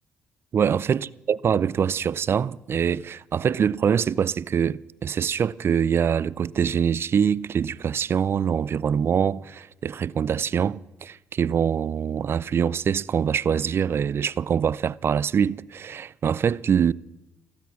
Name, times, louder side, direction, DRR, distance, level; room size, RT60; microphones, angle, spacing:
voice 1, 0.5-16.9, right 7 dB, 50° right, 0.5 m, -24 dB
15.5 x 15.5 x 6.1 m
supercardioid pair, 55°, 5 cm